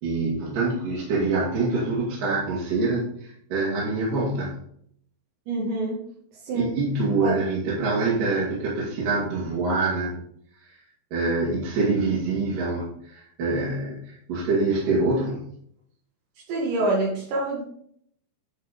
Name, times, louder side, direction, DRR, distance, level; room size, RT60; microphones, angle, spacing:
voice 1, 0.0-4.6 6.7-10.1 11.1-15.4, right 3 dB, 55° right, -7 dB, 3.4 m, -25 dB
voice 2, 5.5-6.0 6.4-6.7 7.2-7.3 16.5-17.6, right 2 dB, 70° right, -4 dB, 4.1 m, -26 dB
11.0 x 4.7 x 5.1 m, 0.66 s
omnidirectional pair, 5.2 m